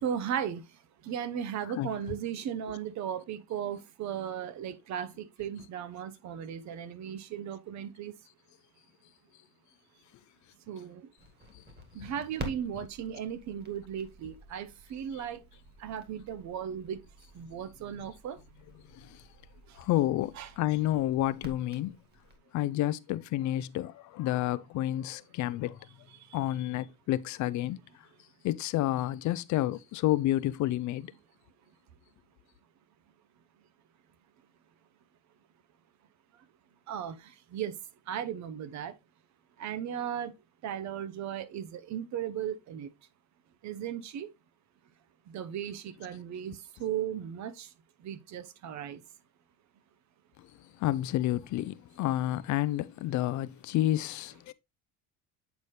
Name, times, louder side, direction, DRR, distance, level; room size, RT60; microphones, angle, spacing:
voice 1, 0.0-0.6 1.1-8.1 10.7-11.0 11.9-15.4 15.8-17.0 17.4-18.4 20.4-20.5 36.9-37.2 37.5-37.7 38.1-38.9 39.6-40.3 40.6-42.9 43.6-44.3 45.3-47.7 48.0-49.0, right 9 dB, 50° right, 0.7 m, -36 dB
Crackle, 11.2-22.4, right 1 dB, 25° right, 1.7 m, -49 dB
voice 2, 19.8-22.0 22.5-25.8 26.3-27.8 28.4-31.1 50.8-54.5, left 14 dB, 55° left, 0.4 m, -30 dB
8.1 x 4.2 x 3.2 m
cardioid pair, 120°, 37 cm